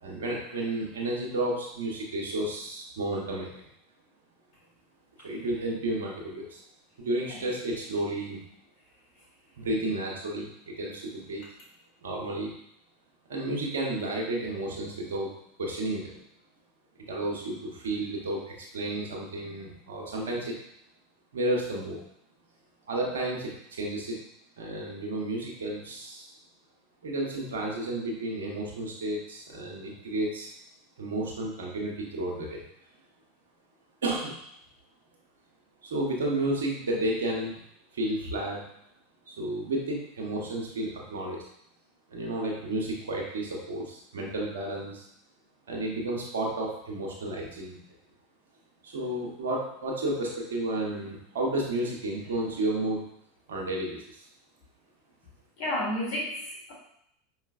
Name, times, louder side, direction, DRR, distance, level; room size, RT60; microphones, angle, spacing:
voice 1, 0.0-3.7 5.2-6.6 7.0-8.4 9.6-11.4 12.0-12.5 13.3-15.3 15.6-16.2 17.1-20.5 21.3-22.0 22.9-24.2 24.6-26.3 27.0-30.5 31.0-32.6 34.0-34.4 35.8-37.5 37.9-38.6 39.3-41.4 42.1-45.1 45.7-47.8 48.8-53.1 53.5-54.3, right 1 dB, 75° right, -1 dB, 0.9 m, -32 dB
voice 2, 55.6-56.7, left 1 dB, 60° left, -3 dB, 1.6 m, -32 dB
4.8 x 3.1 x 2.4 m, 0.73 s
hypercardioid pair, 95°, 0 cm